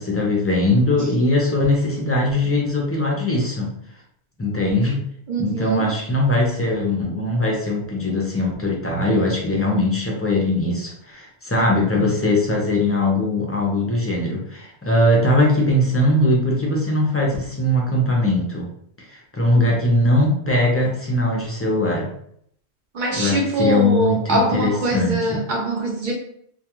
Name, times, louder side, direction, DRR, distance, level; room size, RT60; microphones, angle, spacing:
voice 1, 0.0-3.7 4.4-5.0 5.4-18.7 19.3-22.1 23.1-25.4, left 1 dB, 25° left, -2 dB, 0.3 m, -20 dB
voice 2, 5.3-5.9 22.9-26.1, right 1 dB, 55° right, -2 dB, 0.6 m, -23 dB
2.3 x 2.2 x 2.9 m, 0.67 s
omnidirectional pair, 1.1 m